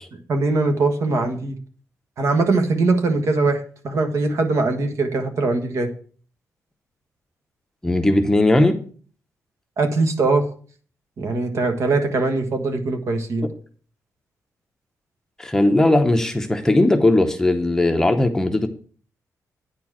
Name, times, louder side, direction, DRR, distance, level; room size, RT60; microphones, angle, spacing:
voice 1, 0.3-1.6 2.2-5.9 9.8-10.4 11.2-13.5, right 3 dB, 55° right, 6 dB, 1.5 m, -21 dB
voice 2, 7.8-8.8 15.4-18.7, left 2 dB, 10° left, 5 dB, 0.8 m, -18 dB
9.7 x 4.5 x 7.3 m, 0.44 s
wide cardioid pair, 160°, 6 cm